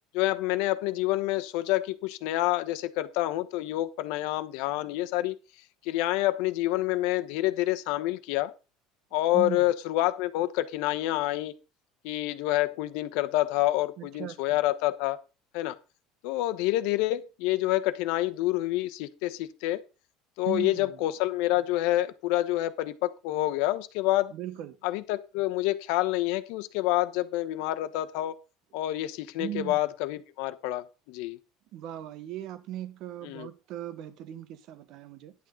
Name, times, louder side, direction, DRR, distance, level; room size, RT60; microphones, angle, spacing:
voice 1, 0.1-5.4 5.8-8.5 9.1-11.5 12.0-15.2 15.5-15.8 16.2-19.8 20.4-24.3 24.8-28.3 28.7-31.4 33.2-33.5, left 16 dB, 65° left, 1.0 m, -28 dB
voice 2, 9.3-9.7 14.0-14.6 20.5-21.0 24.3-24.8 29.4-29.8 31.7-35.3, right 12 dB, 45° right, 1.1 m, -38 dB
11.0 x 8.6 x 3.9 m
cardioid pair, 170°, 0 cm